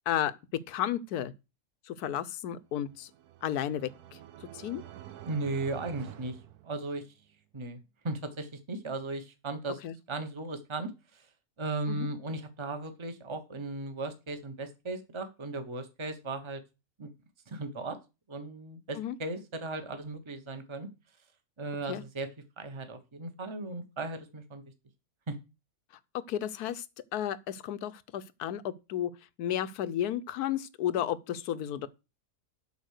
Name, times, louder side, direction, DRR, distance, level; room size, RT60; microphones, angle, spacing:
voice 1, 0.7-1.3 1.9-3.1 3.4-3.9 4.4-4.8 9.8-9.9 11.9-12.1 18.9-19.2 21.9-22.0 26.3-26.8 27.1-29.1 29.4-31.9, left 11 dB, 90° left, 1.2 m, -32 dB
sound 1, 2.7-7.3, right 12 dB, 85° right, 1.3 m, -48 dB
voice 2, 5.3-6.4 6.6-7.0 7.5-7.8 8.0-9.8 10.1-11.3 11.6-16.6 17.0-17.1 17.5-18.0 18.3-20.9 21.6-22.3 22.6-24.6 25.3-25.4, right 2 dB, 20° right, 1.1 m, -36 dB
8.3 x 5.7 x 6.5 m
omnidirectional pair, 1.6 m